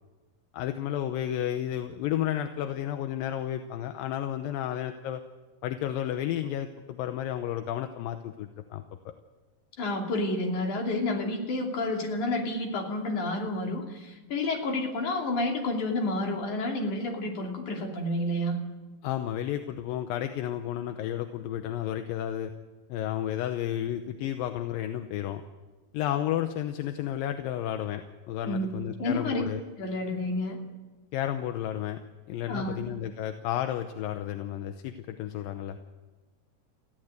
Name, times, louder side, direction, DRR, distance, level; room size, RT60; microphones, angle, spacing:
voice 1, 0.5-5.2 5.6-9.1 19.0-22.5 22.9-25.4 25.9-29.6 31.1-32.0 32.3-35.8, left 11 dB, 75° left, 7 dB, 2.5 m, -32 dB
voice 2, 9.8-18.6 28.4-29.4 29.8-30.6 32.5-32.9, left 2 dB, 55° left, 1 dB, 4.3 m, -30 dB
22.5 x 15.5 x 8.1 m, 1.2 s
omnidirectional pair, 4.2 m